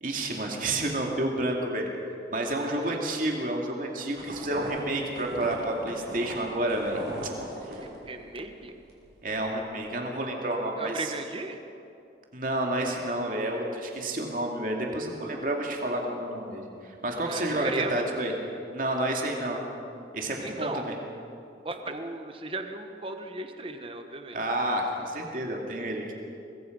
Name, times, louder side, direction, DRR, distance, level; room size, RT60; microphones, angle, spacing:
voice 1, 0.0-1.9 2.3-7.0 7.6-7.8 9.2-11.1 12.3-18.3 18.7-19.6 20.1-20.9 24.3-26.1, right 1 dB, 50° right, 0 dB, 2.6 m, -30 dB
sound 1, 4.2-8.5 8.8-9.3, right 1 dB, 75° right, 5.7 m, -39 dB
voice 2, 7.8-8.7 10.8-11.6 17.2-18.1 20.4-20.9 21.6-24.4, right 2 dB, 30° right, 6 dB, 1.2 m, -36 dB
23.5 x 22.0 x 5.4 m, 2.7 s
head